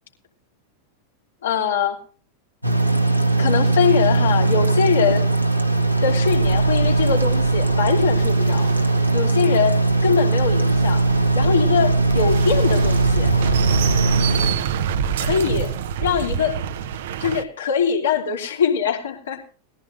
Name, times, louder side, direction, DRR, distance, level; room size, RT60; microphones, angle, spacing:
voice 1, 1.4-2.0 3.4-5.3 6.0-8.7 9.1-11.0 11.3-13.3 15.2-15.7 16.0-16.6 17.2-19.4, left 7 dB, 65° left, 0 dB, 2.8 m, -22 dB
sound 1, 2.6-14.5, right 2 dB, 90° right, 1.6 m, -19 dB
sound 2, 6.3-17.4, right 7 dB, 55° right, 0.8 m, -27 dB
20.0 x 14.0 x 2.6 m, 0.42 s
figure-of-eight pair, 90°, 0 cm